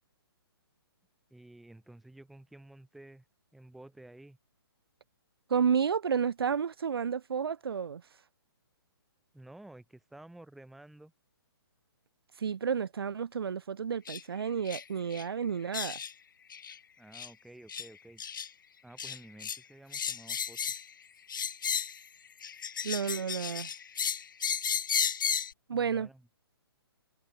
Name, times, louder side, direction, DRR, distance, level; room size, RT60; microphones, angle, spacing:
voice 1, 1.3-3.2 3.5-4.4 9.3-11.1 17.0-18.2 18.8-20.6 25.7-26.3, right 1 dB, ahead, 1.3 m, -52 dB
voice 2, 5.5-8.0 12.4-16.0 22.8-23.7 25.7-26.1, right 7 dB, 65° right, 0.8 m, -31 dB
sound 1, 14.1-14.2 14.6-14.8 15.1-15.2 15.7-16.1 16.5-16.8 17.1-17.3 17.7-17.9 18.2-18.5 19.0-19.6 19.9-20.9 21.3-22.0 22.4-25.5, left 7 dB, 50° left, 0.6 m, -33 dB
hypercardioid pair, 180°, 13 cm